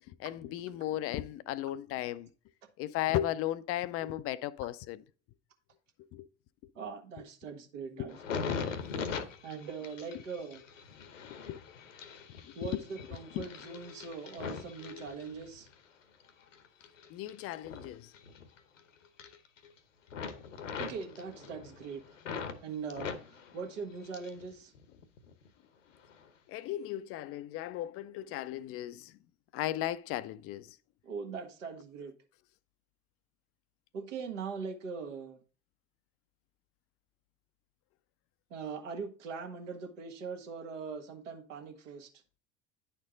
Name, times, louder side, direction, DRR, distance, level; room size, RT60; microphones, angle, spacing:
voice 1, 0.2-2.3 2.8-5.0 6.1-6.3 8.0-8.1 8.5-8.6 11.3-11.6 12.5-12.8 13.3-13.5 17.1-18.1 26.5-29.1 29.5-30.7, left 13 dB, 40° left, 0.4 m, -36 dB
voice 2, 6.7-8.4 9.4-10.6 12.5-15.7 20.8-22.0 22.6-24.7 31.0-32.1 33.9-35.4 38.5-42.1, right 5 dB, 75° right, 1.4 m, -41 dB
sound 1, 8.1-15.7 16.2-18.8 19.1-19.8 20.1-22.6 22.9-24.5 24.8-25.5 26.0-26.2, left 6 dB, 80° left, 0.9 m, -41 dB
9.7 x 4.4 x 3.8 m
hypercardioid pair, 75°, 37 cm